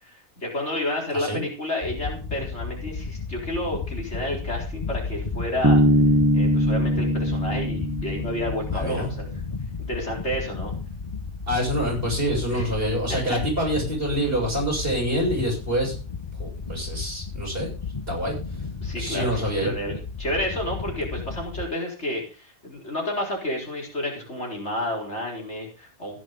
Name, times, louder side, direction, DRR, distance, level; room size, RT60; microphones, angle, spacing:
voice 1, 0.0-5.8 6.3-9.3 9.8-10.7 12.5-12.7 13.1-13.4 18.8-26.2, left 1 dB, 50° left, -1 dB, 4.5 m, -31 dB
sound 1, 1.8-21.7, left 4 dB, 30° left, 0.9 m, -33 dB
Bass guitar, 5.6-9.2, equal, 15° right, 0.8 m, -21 dB
voice 2, 8.7-9.1 11.5-15.9 16.4-17.7 18.1-18.3 19.0-19.7, equal, 40° right, -1 dB, 7.6 m, -26 dB
14.5 x 11.0 x 3.8 m, 0.34 s
omnidirectional pair, 1.5 m